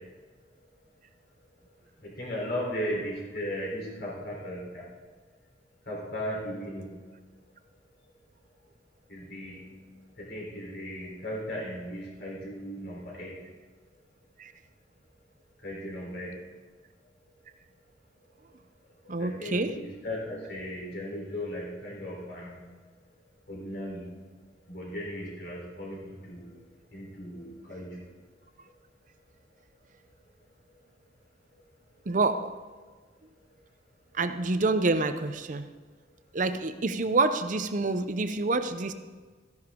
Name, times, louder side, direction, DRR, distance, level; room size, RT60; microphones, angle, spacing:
voice 1, 2.0-4.8 5.9-7.0 9.1-9.9 10.2-13.3 15.6-16.3 19.2-22.6 23.5-24.2 24.7-26.5 26.9-28.0, equal, 60° left, -3 dB, 3.7 m, -36 dB
voice 2, 19.1-19.8 32.1-32.5 34.1-35.7 36.3-38.9, right 3 dB, 45° right, 10 dB, 0.7 m, -27 dB
14.0 x 10.5 x 3.7 m, 1.4 s
head